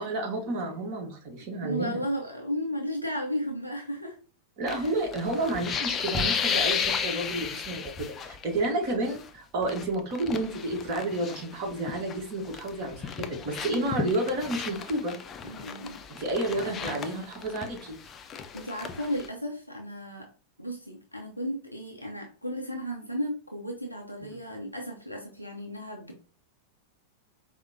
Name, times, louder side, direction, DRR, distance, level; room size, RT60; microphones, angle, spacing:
voice 1, 0.0-2.0 4.6-15.2 16.1-18.0, right 2 dB, 45° right, 2 dB, 1.1 m, -31 dB
voice 2, 1.6-4.2 4.7-4.9 8.6-8.8 13.7-14.0 15.4-16.0 16.6-17.2 18.2-20.3 20.6-26.2, equal, 90° right, 1 dB, 0.5 m, -35 dB
sound 1, 4.7-8.7 8.9-9.2 9.6-12.2 12.5-19.3, left 6 dB, 25° left, 0.4 m, -33 dB
4.8 x 2.1 x 2.6 m, 0.37 s
figure-of-eight pair, 90°, 0 cm